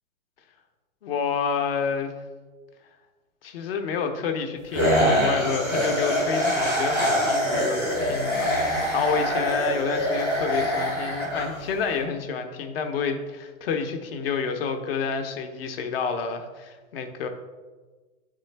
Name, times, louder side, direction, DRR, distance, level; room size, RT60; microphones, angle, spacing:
voice 1, 1.0-2.1 3.4-17.3, left 5 dB, 45° left, 6 dB, 0.7 m, -29 dB
sound 1, 4.7-11.9, equal, ahead, 0.3 m, -24 dB
8.9 x 3.7 x 3.2 m, 1.3 s
hypercardioid pair, 155°, 42 cm